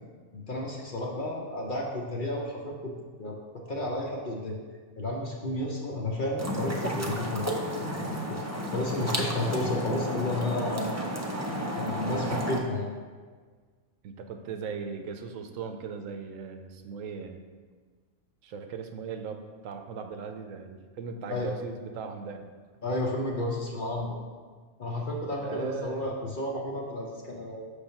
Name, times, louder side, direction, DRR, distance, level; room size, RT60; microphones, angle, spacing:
voice 1, 0.3-2.9 3.2-4.6 5.0-8.4 8.7-10.9 11.7-12.9 21.3-21.5 22.8-24.2 24.8-27.7, left 1 dB, 45° left, -1 dB, 0.8 m, -32 dB
sound 1, 6.4-12.6, equal, 25° right, 0.3 m, -32 dB
voice 2, 10.4-10.7 14.0-17.4 18.4-22.6 25.4-26.0, right 5 dB, 80° right, 6 dB, 1.0 m, -38 dB
6.3 x 3.3 x 5.6 m, 1.5 s
omnidirectional pair, 1.4 m